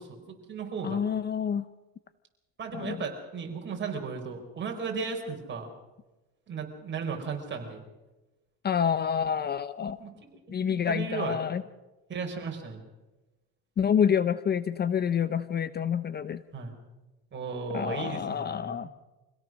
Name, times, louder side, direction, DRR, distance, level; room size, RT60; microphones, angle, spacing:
voice 1, 0.0-1.0 2.6-5.7 6.5-7.8 10.0-10.1 10.5-11.4 12.1-12.8 16.5-16.7 17.3-18.9, right 5 dB, 35° right, 2 dB, 5.0 m, -35 dB
voice 2, 0.8-1.6 2.7-3.0 8.6-10.0 10.5-11.6 13.8-16.4 17.7-18.9, left 8 dB, 30° left, 14 dB, 0.7 m, -28 dB
25.5 x 17.0 x 6.4 m, 1.1 s
cardioid pair, 120°, 32 cm